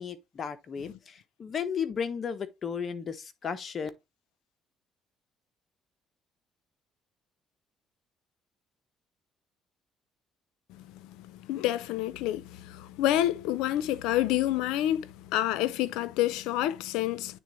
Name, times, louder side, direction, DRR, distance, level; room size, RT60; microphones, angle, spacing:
voice 1, 0.0-3.9, left 7 dB, 45° left, 1.1 m, -34 dB
voice 2, 11.0-17.4, left 13 dB, 85° left, 0.6 m, -28 dB
9.0 x 3.8 x 3.2 m
cardioid pair, 95°, 0 cm